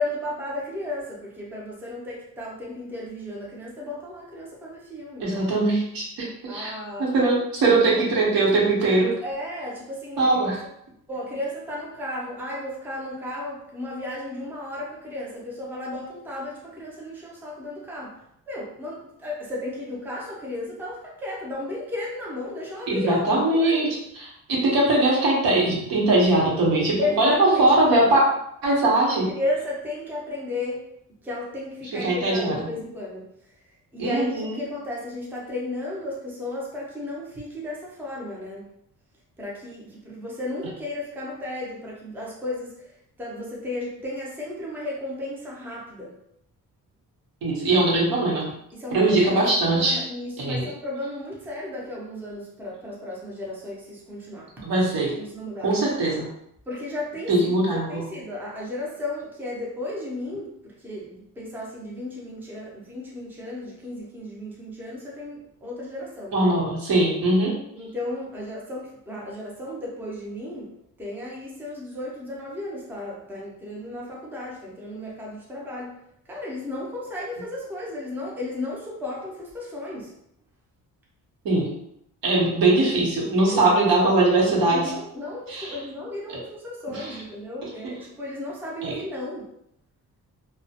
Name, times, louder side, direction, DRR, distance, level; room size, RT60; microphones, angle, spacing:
voice 1, 0.0-5.6 6.5-7.2 9.2-10.5 11.1-18.2 18.5-23.8 27.0-27.7 29.1-30.8 31.2-33.3 33.9-38.7 39.4-42.9 43.2-46.1 48.8-54.5 55.2-55.8 56.7-60.5 60.8-66.5 67.7-70.7 71.0-75.9 76.3-80.1 83.5-83.7 84.0-89.5, left 1 dB, 5° right, -4 dB, 0.5 m, -34 dB
voice 2, 5.2-6.7 7.0-9.1 10.2-10.6 22.9-23.9 24.1-28.2 28.6-29.3 31.9-32.7 34.0-34.6 47.4-48.5 48.9-50.0 50.4-50.7 54.6-55.1 55.6-56.3 57.3-58.1 66.3-67.6 81.4-81.7 82.2-84.9 85.5-85.8 86.3-86.4 86.9-87.2 87.8-87.9 88.8-88.9, right 2 dB, 75° right, -4 dB, 0.9 m, -21 dB
2.3 x 2.0 x 2.7 m, 0.76 s
wide cardioid pair, 140°, 35 cm